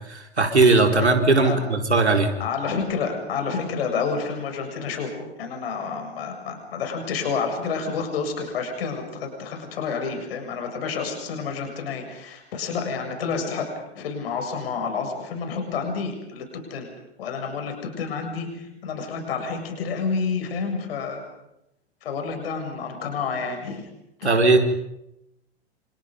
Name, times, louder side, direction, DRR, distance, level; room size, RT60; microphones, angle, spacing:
voice 1, 0.1-2.3 24.2-24.6, right 3 dB, 85° right, 4 dB, 4.6 m, -18 dB
voice 2, 2.4-13.7 13.9-16.9 17.2-21.2 22.0-23.9 24.2-24.3, left 5 dB, 65° left, 4 dB, 7.3 m, -29 dB
30.0 x 28.0 x 5.4 m, 0.85 s
figure-of-eight pair, 100°, 33 cm